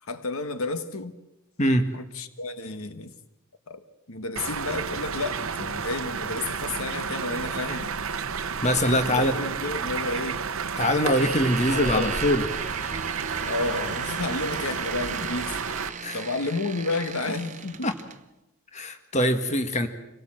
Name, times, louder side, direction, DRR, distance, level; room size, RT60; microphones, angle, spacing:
voice 1, 0.0-1.2 1.9-3.1 3.7-7.9 8.7-10.4 11.6-12.2 13.4-15.6 16.1-17.9, left 3 dB, 75° left, 1.4 m, -31 dB
sound 1, 4.4-15.9, right 5 dB, 65° right, 0.8 m, -31 dB
voice 2, 8.6-9.4 10.8-12.5 16.0-16.2 17.8-17.9 18.7-19.9, equal, 30° left, 1.6 m, -23 dB
sound 2, 11.0-18.2, right 6 dB, 35° right, 0.9 m, -36 dB
27.0 x 17.5 x 7.7 m
head